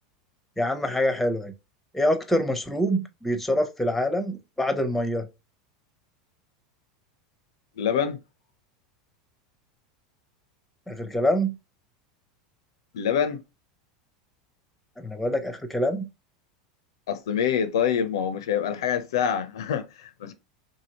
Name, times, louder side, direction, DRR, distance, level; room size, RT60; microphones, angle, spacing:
voice 1, 0.6-1.5 1.9-5.3 10.9-11.5 15.0-16.1, equal, 5° left, 0.6 m, -25 dB
voice 2, 7.8-8.2 12.9-13.4 17.1-20.3, left 8 dB, 75° left, 0.4 m, -26 dB
2.8 x 2.7 x 2.8 m
hypercardioid pair, 95°, 2 cm